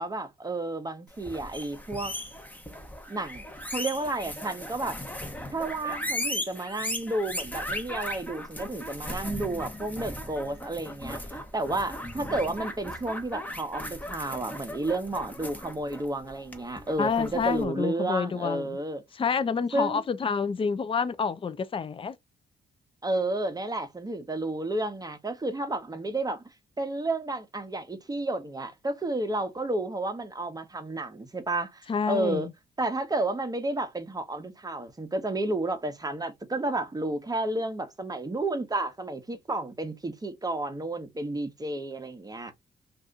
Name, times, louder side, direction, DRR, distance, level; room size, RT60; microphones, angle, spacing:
voice 1, 0.0-2.1 3.1-3.4 3.7-5.0 5.5-11.2 11.5-19.0 19.7-20.0 23.0-26.4 26.8-32.5 32.8-42.5, right 2 dB, 20° right, 1.0 m, -31 dB
sound 1, 1.1-17.6, left 1 dB, 10° left, 1.0 m, -37 dB
voice 2, 17.0-18.8 19.1-22.1 31.9-32.5, left 5 dB, 30° left, 0.5 m, -28 dB
2.7 x 2.6 x 3.5 m
supercardioid pair, 60°, 19 cm